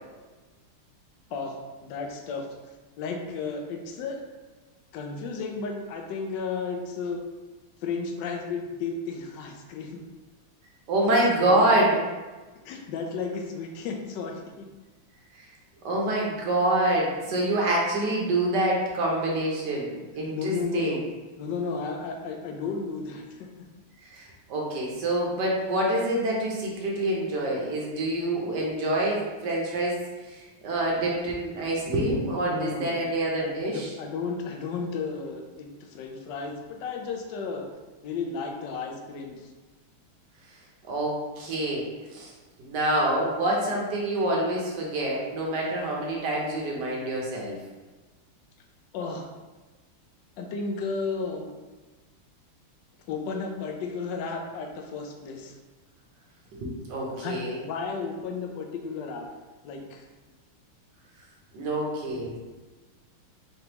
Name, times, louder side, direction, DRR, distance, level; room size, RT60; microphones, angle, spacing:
voice 1, 1.3-2.4 3.0-4.2 4.9-7.2 7.8-10.0 11.2-11.6 12.6-14.7 20.3-21.0 21.4-23.5 32.4-33.0 33.4-37.7 38.0-39.4 48.9-49.3 50.4-51.6 53.1-55.6 57.1-57.4 57.6-59.3 59.6-60.0, left 4 dB, 75° left, 3 dB, 1.1 m, -33 dB
voice 2, 10.9-12.0 15.3-15.4 15.8-21.0 24.0-33.9 40.8-42.3 42.6-47.6 56.5-57.6 61.5-62.4, right 1 dB, 60° right, -2 dB, 1.2 m, -26 dB
3.9 x 3.4 x 2.9 m, 1.2 s
omnidirectional pair, 2.4 m